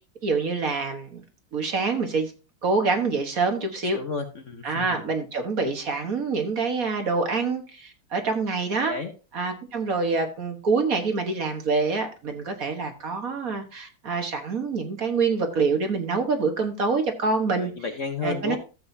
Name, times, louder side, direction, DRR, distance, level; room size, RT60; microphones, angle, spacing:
voice 1, 0.2-1.2 1.5-2.3 2.6-4.0 4.6-8.9 9.3-17.7 18.2-18.6, right 4 dB, 50° right, 5 dB, 1.7 m, -26 dB
voice 2, 3.9-5.0 8.9-9.1 17.6-18.6, left 4 dB, 50° left, 5 dB, 1.2 m, -32 dB
13.5 x 7.7 x 2.7 m, 0.33 s
omnidirectional pair, 2.0 m